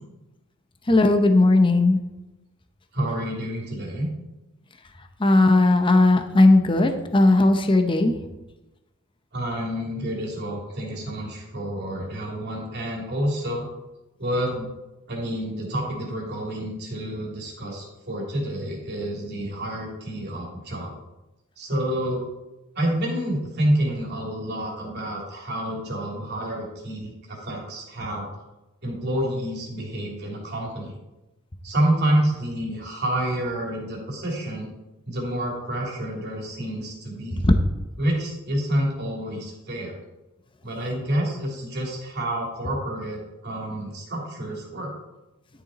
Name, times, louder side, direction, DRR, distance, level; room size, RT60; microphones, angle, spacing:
voice 1, 0.9-2.0 5.2-8.2 37.4-37.5, left 2 dB, 25° left, 6 dB, 0.7 m, -17 dB
voice 2, 2.9-4.1 9.3-13.6 14.2-14.7 15.1-20.9 21.6-22.2 22.8-28.3 28.8-31.0 31.6-34.7 35.1-37.5 38.0-40.0 40.6-44.9, right 1 dB, 50° right, -2 dB, 2.9 m, -28 dB
11.5 x 7.0 x 4.1 m, 1.0 s
head